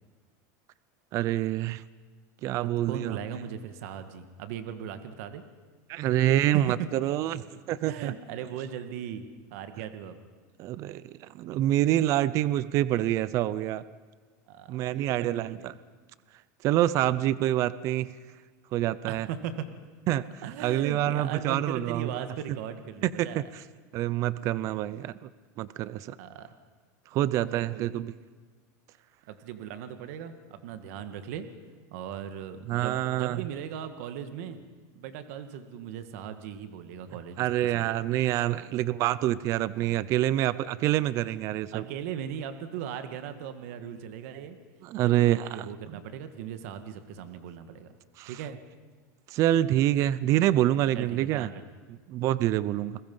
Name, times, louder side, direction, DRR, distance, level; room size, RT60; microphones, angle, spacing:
voice 1, 1.1-1.8 2.4-3.2 5.9-7.4 7.7-8.1 10.6-13.8 14.7-15.7 16.6-18.1 18.7-19.3 20.1-22.3 23.0-23.4 23.9-25.3 25.6-26.2 27.1-28.1 32.7-33.4 37.4-41.8 44.8-45.7 48.2-48.3 49.3-51.5 52.1-53.0, right 13 dB, 35° right, 17 dB, 0.6 m, -26 dB
voice 2, 2.6-5.4 6.4-6.6 7.9-9.2 9.5-10.2 14.5-15.7 19.1-19.7 20.4-23.4 26.2-26.5 27.5-28.0 29.3-31.5 31.9-34.6 35.0-38.1 39.8-40.0 41.7-44.6 45.0-47.9 48.3-48.6 50.9-51.6, right 9 dB, 60° right, 9 dB, 1.8 m, -38 dB
29.5 x 21.0 x 5.6 m, 1.4 s
supercardioid pair, 165°, 9 cm